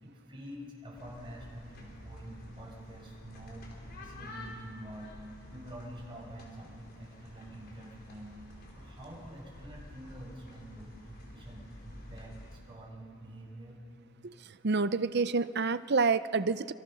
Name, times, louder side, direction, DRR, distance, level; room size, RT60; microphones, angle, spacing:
voice 1, 0.0-5.2 5.5-8.3 8.7-13.8, equal, 25° right, -2 dB, 6.2 m, -47 dB
sound 1, 0.9-12.6, left 1 dB, 50° left, 4.8 m, -50 dB
voice 2, 14.6-16.7, right 4 dB, 55° right, 14 dB, 0.6 m, -28 dB
27.0 x 26.0 x 6.4 m, 2.5 s
head